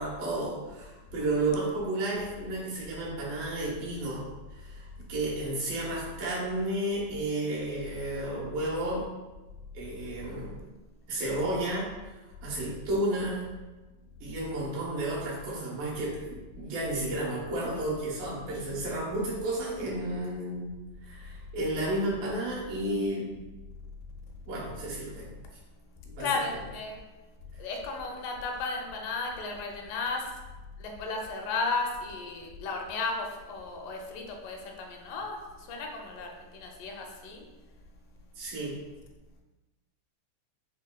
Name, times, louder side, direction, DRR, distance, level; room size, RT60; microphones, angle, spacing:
voice 1, 0.0-9.1 9.7-10.6 11.1-11.9 12.4-13.4 14.2-20.7 21.0-23.3 24.5-25.3 26.1-26.3 38.4-38.7, right 1 dB, 90° right, -5 dB, 2.7 m, -32 dB
voice 2, 26.2-27.0 27.6-30.3 30.8-37.4, left 3 dB, 85° left, 1 dB, 2.1 m, -34 dB
6.2 x 2.2 x 2.2 m, 1.2 s
omnidirectional pair, 3.8 m